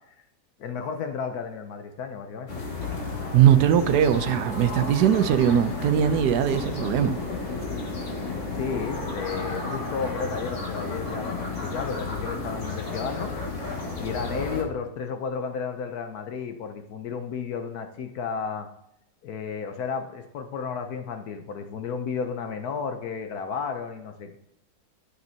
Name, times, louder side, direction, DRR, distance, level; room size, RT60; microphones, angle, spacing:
voice 1, 0.6-2.5 8.5-13.3 14.0-18.7 19.2-24.4, left 6 dB, 75° left, 1.2 m, -33 dB
sound 1, 2.5-14.6, left 3 dB, 50° left, 1.9 m, -32 dB
voice 2, 3.3-7.2, right 9 dB, 85° right, 1.2 m, -20 dB
12.0 x 6.4 x 2.8 m
omnidirectional pair, 1.7 m